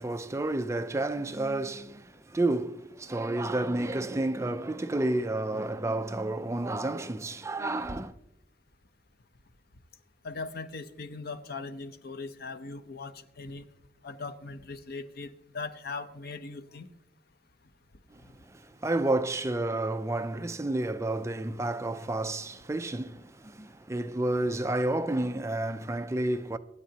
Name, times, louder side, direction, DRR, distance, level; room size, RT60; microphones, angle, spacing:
voice 1, 0.0-8.1 18.1-18.2 18.5-26.6, right 2 dB, 15° right, 0.4 m, -30 dB
voice 2, 10.2-13.6 14.0-16.9, left 3 dB, 55° left, 0.8 m, -39 dB
24.0 x 9.2 x 2.9 m
head